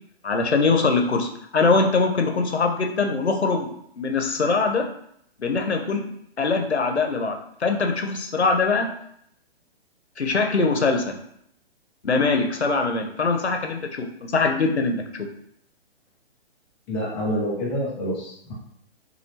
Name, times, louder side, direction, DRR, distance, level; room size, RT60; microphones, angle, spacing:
voice 1, 0.2-3.7 4.0-4.9 5.4-6.1 6.4-8.9 10.2-11.2 12.0-14.1 14.3-15.3, left 4 dB, 90° left, 4 dB, 1.0 m, -22 dB
voice 2, 16.9-18.5, equal, 5° left, -8 dB, 0.3 m, -27 dB
5.9 x 3.1 x 2.9 m, 0.71 s
figure-of-eight pair, 135°, 32 cm